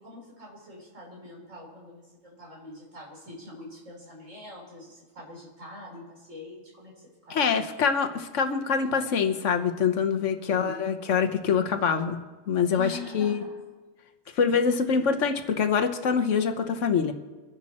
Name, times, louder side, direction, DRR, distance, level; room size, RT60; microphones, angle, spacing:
voice 1, 0.0-7.7 10.4-10.9 12.7-13.7 14.4-14.6, left 3 dB, 65° right, -2 dB, 4.3 m, -44 dB
voice 2, 7.3-12.2 12.5-13.4 14.4-17.1, left 6 dB, 65° left, 7 dB, 1.3 m, -25 dB
25.0 x 10.5 x 4.2 m, 1.3 s
omnidirectional pair, 1.4 m